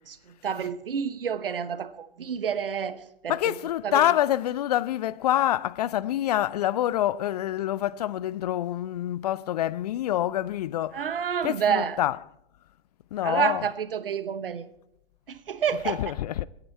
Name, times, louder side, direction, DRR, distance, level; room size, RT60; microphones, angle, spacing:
voice 1, 0.1-3.5 3.8-4.1 10.9-12.0 13.2-14.7 15.3-16.0, right 7 dB, 65° right, 1.0 m, -29 dB
voice 2, 3.3-11.0 11.4-12.2 13.1-13.7 15.8-16.5, left 12 dB, 45° left, 0.4 m, -26 dB
22.0 x 9.7 x 4.3 m
figure-of-eight pair, 100°, 30 cm